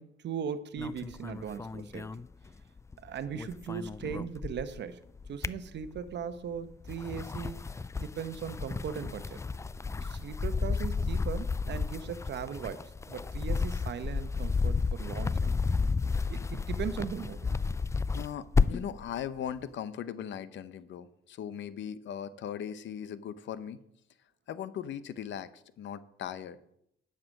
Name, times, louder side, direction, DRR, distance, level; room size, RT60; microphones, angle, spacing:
voice 1, 0.0-2.2 3.0-9.4 10.0-15.5 16.3-17.6, right 7 dB, 60° right, 12 dB, 0.9 m, -39 dB
sound 1, 0.8-2.9 3.2-4.8 5.2-6.2 6.7-19.0, left 4 dB, 15° left, 0.3 m, -32 dB
voice 2, 18.1-23.8 24.5-26.6, left 9 dB, 70° left, 15 dB, 0.8 m, -39 dB
10.5 x 6.9 x 6.4 m, 0.75 s
cardioid pair, 90°, 20 cm